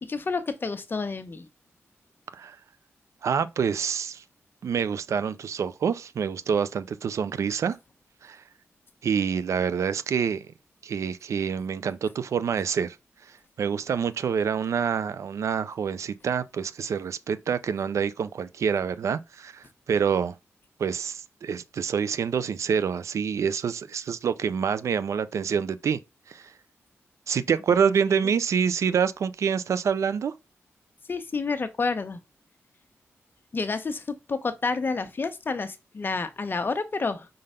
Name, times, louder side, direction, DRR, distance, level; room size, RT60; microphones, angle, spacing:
voice 1, 0.0-1.5 28.2-28.3 31.1-32.2 33.5-37.3, left 4 dB, 45° left, 1.1 m, -29 dB
voice 2, 3.2-4.2 4.6-7.8 8.2-8.4 9.0-10.5 10.8-13.0 13.6-20.3 20.8-26.0 26.3-26.5 27.3-30.3, right 7 dB, 75° right, 0.6 m, -27 dB
5.4 x 3.9 x 5.0 m
cardioid pair, 80°, 5 cm